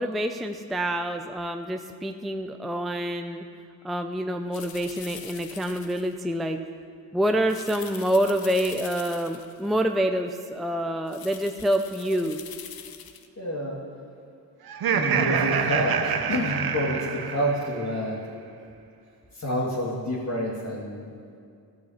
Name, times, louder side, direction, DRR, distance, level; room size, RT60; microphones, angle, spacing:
voice 1, 0.0-3.4 3.8-6.6 7.1-12.4, equal, ahead, 5 dB, 0.5 m, -27 dB
sound 1, 4.5-6.1 7.4-9.7 11.1-13.3, left 9 dB, 55° left, 0.9 m, -43 dB
voice 2, 13.4-13.8 14.9-18.5 19.3-21.1, equal, 35° left, -4 dB, 2.3 m, -28 dB
Laughter, 14.7-17.9, right 7 dB, 55° right, 0.9 m, -26 dB
13.5 x 6.2 x 7.3 m, 2.3 s
supercardioid pair, 60°, 44 cm